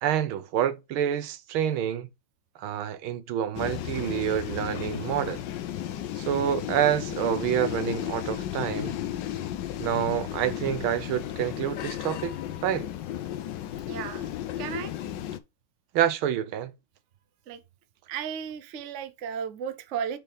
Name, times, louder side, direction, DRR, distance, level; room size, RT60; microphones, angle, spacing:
voice 1, 0.0-2.1 2.6-5.4 6.2-8.9 9.8-12.4 12.6-12.9 15.9-16.7, right 10 dB, 75° right, 1.6 m, -27 dB
sound 1, 3.5-15.4, left 12 dB, 70° left, 1.2 m, -34 dB
voice 2, 13.9-14.3 14.6-14.9 17.5-17.6 18.1-20.2, right 7 dB, 60° right, 0.7 m, -34 dB
6.8 x 4.5 x 3.4 m
omnidirectional pair, 2.4 m